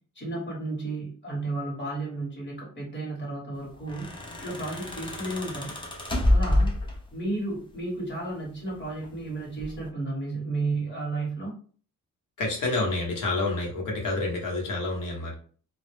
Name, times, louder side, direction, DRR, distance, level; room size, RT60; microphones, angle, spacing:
voice 1, 0.1-4.1 4.4-5.8 6.3-6.7 7.1-11.5, right 2 dB, 35° left, -4 dB, 1.3 m, -33 dB
sound 1, 3.7-7.3 8.4-9.2 9.6-9.9, left 1 dB, 15° left, 0.4 m, -27 dB
voice 2, 12.4-15.3, left 2 dB, 70° left, -1 dB, 1.0 m, -28 dB
2.3 x 2.0 x 3.2 m, 0.44 s
wide cardioid pair, 140°, 33 cm